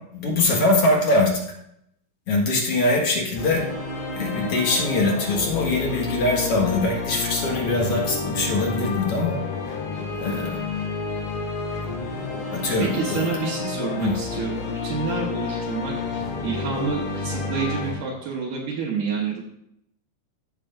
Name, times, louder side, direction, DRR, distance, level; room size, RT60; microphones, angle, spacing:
voice 1, 0.1-1.3 2.3-3.6 4.1-9.4 10.2-10.6 12.5-13.3 14.0-14.1, left 2 dB, 50° left, -1 dB, 2.3 m, -22 dB
sound 1, 3.4-17.9, left 4 dB, 80° left, 3.5 m, -30 dB
voice 2, 12.8-19.4, right 5 dB, 70° right, -4 dB, 2.6 m, -29 dB
14.5 x 6.5 x 2.5 m, 0.76 s
omnidirectional pair, 4.0 m